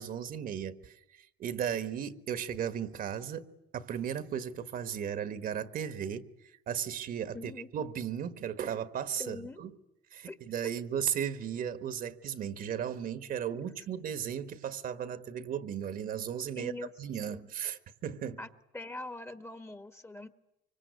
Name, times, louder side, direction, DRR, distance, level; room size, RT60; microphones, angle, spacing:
voice 1, 0.0-3.5 3.7-9.7 10.1-16.7 17.0-18.4, right 8 dB, 60° right, 1.5 m, -36 dB
voice 2, 7.3-7.7 9.2-9.6 10.3-10.4 10.6-10.7 16.6-16.9 17.3-17.4 18.4-20.3, left 2 dB, 15° left, 1.5 m, -43 dB
25.0 x 24.5 x 9.6 m
cardioid pair, 110°, 17 cm